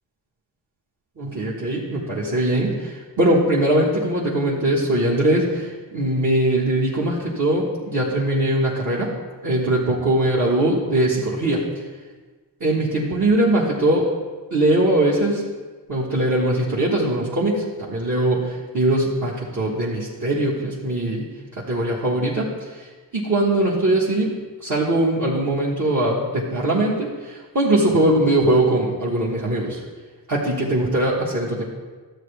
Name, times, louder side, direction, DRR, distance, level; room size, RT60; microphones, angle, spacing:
voice 1, 1.2-9.1 9.4-11.6 12.6-14.1 14.5-15.4 15.9-21.3 21.6-22.5 22.8-22.9 23.1-29.8 30.3-31.6, right 1 dB, 45° right, -7 dB, 1.6 m, -21 dB
12.0 x 8.0 x 3.4 m, 1.4 s
cardioid pair, 85°, 43 cm